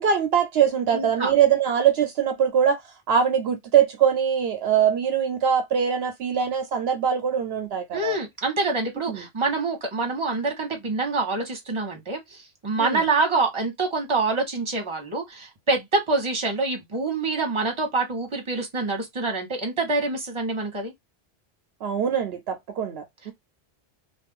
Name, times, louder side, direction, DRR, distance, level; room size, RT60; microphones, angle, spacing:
voice 1, 0.0-8.2 9.1-9.3 12.8-13.0 21.8-23.3, right 8 dB, 70° right, 0.8 m, -22 dB
voice 2, 0.9-1.3 7.9-20.9, right 3 dB, 30° right, 1.1 m, -26 dB
2.5 x 2.4 x 3.5 m
omnidirectional pair, 1.1 m